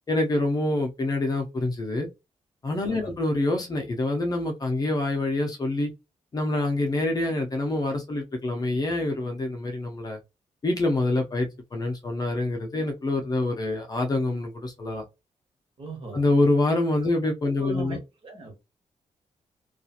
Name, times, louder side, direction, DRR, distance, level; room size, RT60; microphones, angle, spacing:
voice 1, 0.1-2.1 2.6-5.9 6.3-10.2 10.6-15.0 16.1-18.0, left 2 dB, 30° left, 0.5 m, -26 dB
voice 2, 2.9-3.2 15.8-16.2 17.6-18.0 18.2-18.7, right 3 dB, 45° right, 1.1 m, -39 dB
2.8 x 2.3 x 2.3 m
wide cardioid pair, 160°, 13 cm